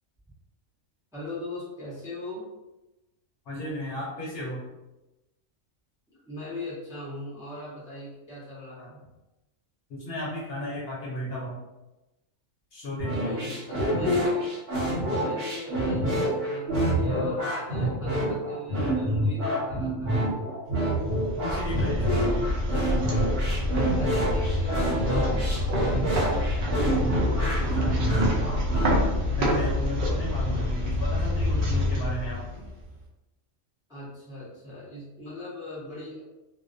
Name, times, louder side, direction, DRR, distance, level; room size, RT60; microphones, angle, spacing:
voice 1, 1.1-2.5 6.2-9.0 13.1-14.5 14.8-20.3 24.0-28.2 33.9-36.2, left 1 dB, 5° right, -8 dB, 0.5 m, -40 dB
voice 2, 3.5-4.6 9.9-11.6 12.7-13.5 21.4-22.5 29.4-32.4, equal, 60° left, -4 dB, 0.7 m, -34 dB
sound 1, 13.0-29.0, right 1 dB, 75° right, 1.1 m, -27 dB
sound 2, 20.9-32.9, left 1 dB, 60° right, 0.6 m, -27 dB
2.3 x 2.2 x 2.4 m, 1.0 s
omnidirectional pair, 1.3 m